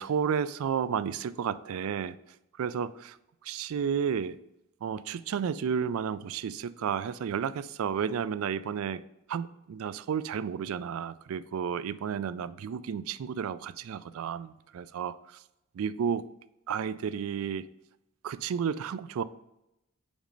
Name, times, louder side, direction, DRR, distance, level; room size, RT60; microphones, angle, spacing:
voice 1, 0.0-2.2 2.6-3.2 3.4-4.4 4.8-9.0 9.3-15.2 15.8-16.2 16.7-17.7 18.2-19.2, right 7 dB, 75° right, 15 dB, 0.3 m, -32 dB
5.2 x 5.0 x 5.2 m, 0.87 s
head